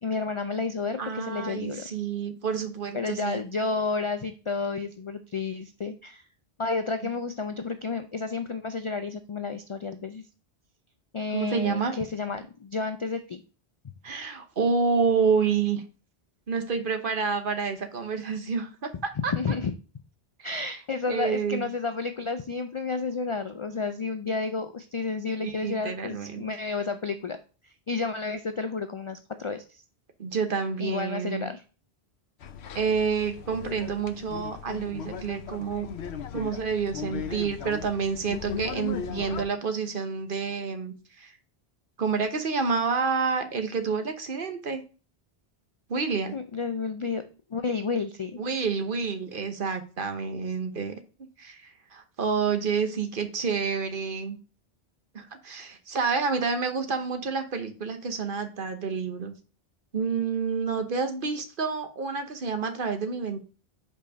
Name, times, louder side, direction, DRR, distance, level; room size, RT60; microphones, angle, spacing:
voice 1, 0.0-1.8 2.9-6.2 6.6-10.2 11.1-13.4 19.3-19.7 20.4-27.4 27.9-29.8 30.8-31.6 46.3-47.2 47.5-48.4, left 4 dB, 50° left, 9 dB, 0.3 m, -31 dB
voice 2, 1.0-3.4 11.3-12.0 14.0-15.8 16.5-19.3 20.4-20.5 21.1-21.7 25.4-26.4 30.2-31.5 32.7-35.9 36.3-41.3 42.0-44.8 45.9-46.4 48.4-50.9 51.4-54.4 55.1-59.3 59.9-63.4, right 5 dB, 55° right, 7 dB, 1.1 m, -29 dB
sound 1, 32.4-39.4, left 6 dB, 85° left, 0.9 m, -37 dB
5.5 x 4.3 x 5.1 m, 0.35 s
omnidirectional pair, 1.1 m